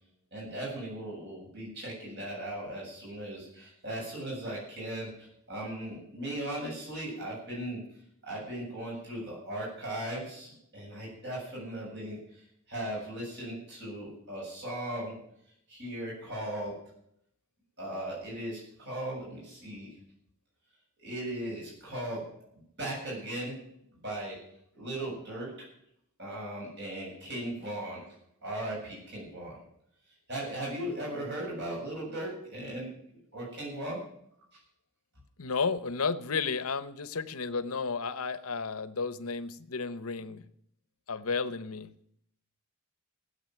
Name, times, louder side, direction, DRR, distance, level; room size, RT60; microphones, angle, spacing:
voice 1, 0.3-7.8 8.2-15.1 15.7-16.7 17.8-19.9 21.0-22.2 22.8-23.6 23.9-24.4 24.7-25.5 26.2-28.0 28.4-29.6 30.3-32.9 33.3-34.0 34.5-34.6, right 1 dB, 55° right, -4 dB, 7.7 m, -37 dB
voice 2, 35.4-40.4 41.1-41.9, left 4 dB, 80° left, 13 dB, 0.9 m, -32 dB
15.5 x 8.2 x 9.2 m, 0.72 s
head